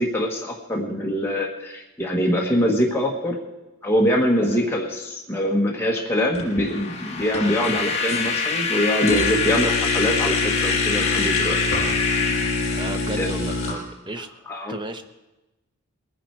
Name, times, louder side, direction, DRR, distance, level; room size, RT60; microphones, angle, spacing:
voice 1, 0.0-3.4 3.8-11.6 13.2-13.3 14.5-14.8, equal, 10° left, -2 dB, 1.4 m, -23 dB
sound 1, 6.3-6.8 7.2-8.2 9.1-13.7, left 3 dB, 65° left, 5.6 m, -26 dB
sound 2, 6.5-13.5, left 5 dB, 30° left, 1.3 m, -25 dB
voice 2, 12.7-14.3 14.7-15.0, right 1 dB, 20° right, 7 dB, 0.9 m, -33 dB
21.0 x 10.0 x 4.7 m, 1.0 s
head